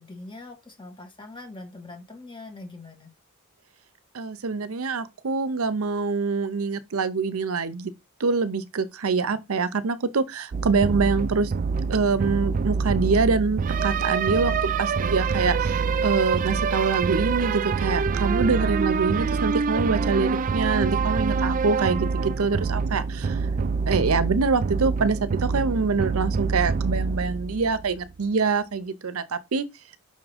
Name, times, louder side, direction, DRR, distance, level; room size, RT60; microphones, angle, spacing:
voice 1, 0.0-3.1, left 2 dB, 20° left, 1.9 m, -42 dB
voice 2, 4.1-7.9 8.2-11.5 11.9-23.4 23.9-29.7, right 4 dB, 75° right, 0.6 m, -25 dB
sound 1, 10.5-28.1, right 5 dB, 40° right, 0.3 m, -26 dB
5.8 x 3.6 x 4.9 m
head